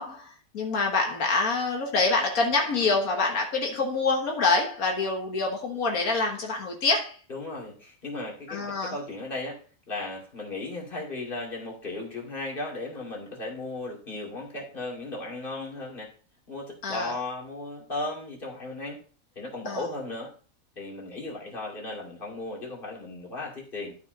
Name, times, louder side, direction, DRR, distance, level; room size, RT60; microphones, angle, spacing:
voice 1, 0.0-7.2 8.5-9.0 16.8-17.1 19.7-19.8, left 3 dB, 85° left, 1.8 m, -26 dB
voice 2, 7.3-9.6 9.9-16.1 16.5-19.0 19.4-20.3 20.8-24.0, left 2 dB, 40° left, 2.9 m, -36 dB
13.0 x 4.9 x 3.9 m
omnidirectional pair, 1.5 m